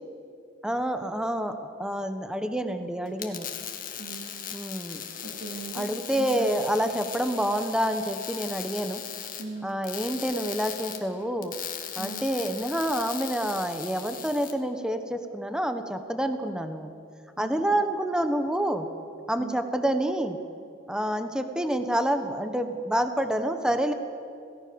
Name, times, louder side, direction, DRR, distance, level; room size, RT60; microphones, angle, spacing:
voice 1, 0.6-3.5 4.5-5.0 5.7-9.0 9.6-11.5 12.0-16.9 17.4-18.9 19.3-20.4 20.9-23.9, right 1 dB, 5° right, 7 dB, 1.3 m, -28 dB
sound 1, 3.1-14.5, left 9 dB, 45° left, 2.1 m, -38 dB
voice 2, 4.0-4.6 5.2-5.9 6.1-6.5 6.8-7.0 9.4-9.7 12.0-12.3 17.4-17.5 19.4-19.7, right 3 dB, 75° right, -1 dB, 3.4 m, -39 dB
27.5 x 18.0 x 7.1 m, 2.5 s
head